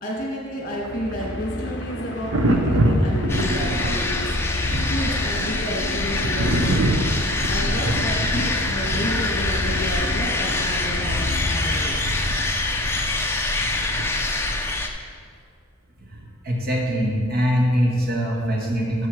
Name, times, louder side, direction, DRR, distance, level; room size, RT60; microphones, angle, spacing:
voice 1, 0.0-4.3 4.9-6.9 7.5-12.0, equal, 40° left, -2 dB, 1.8 m, -31 dB
sound 1, 0.7-12.4, left 2 dB, 55° left, 0.5 m, -31 dB
Thunder, 0.8-14.5 16.1-16.3, right 1 dB, 80° right, 0.8 m, -27 dB
sound 2, 3.3-14.9, left 2 dB, 10° left, 0.5 m, -25 dB
voice 2, 16.4-19.1, equal, 50° right, -1 dB, 1.4 m, -22 dB
7.8 x 5.7 x 6.2 m, 2.1 s
head